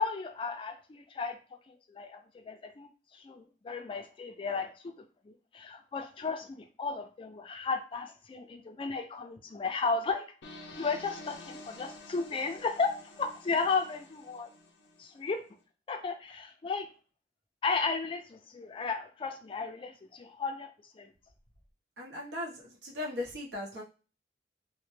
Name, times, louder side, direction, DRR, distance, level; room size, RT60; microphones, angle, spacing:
voice 1, 0.0-1.4 1.7-10.3 10.8-14.5 15.0-15.4 15.9-16.9 17.6-20.7 21.0-21.1, left 4 dB, 30° left, 5 dB, 0.3 m, -34 dB
sound 1, 10.4-15.3, left 2 dB, 90° left, 0.5 m, -49 dB
voice 2, 22.0-23.8, left 2 dB, 80° right, -2 dB, 0.8 m, -38 dB
2.1 x 2.1 x 3.1 m, 0.35 s
head